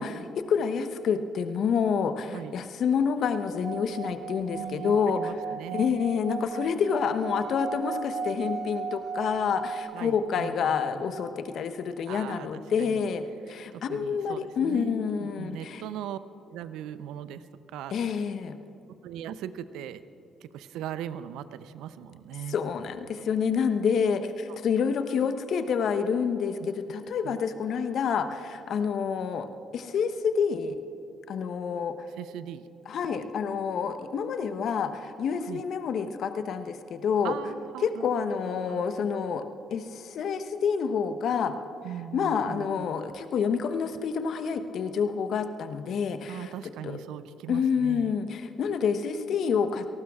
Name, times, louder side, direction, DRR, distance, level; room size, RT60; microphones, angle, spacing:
voice 1, 0.0-5.3 5.7-15.8 17.9-18.6 22.5-29.5 29.7-30.8 31.3-32.1 32.9-37.4 37.8-39.4 39.7-41.5 42.1-46.5 46.8-47.0 47.5-49.9, left 6 dB, 60° left, 9 dB, 1.0 m, -28 dB
Singing / Glass, 3.5-10.2, right 5 dB, 55° right, 2.2 m, -36 dB
voice 2, 4.5-5.9 9.9-11.1 12.1-13.1 13.5-16.2 16.5-17.9 19.0-20.0 20.4-22.6 27.2-27.4 32.2-32.7 35.5-35.6 37.2-38.8 41.8-42.9 46.3-48.1, right 10 dB, 70° right, 14 dB, 0.6 m, -40 dB
28.0 x 18.5 x 2.4 m, 3.0 s
hypercardioid pair, 45°, 0 cm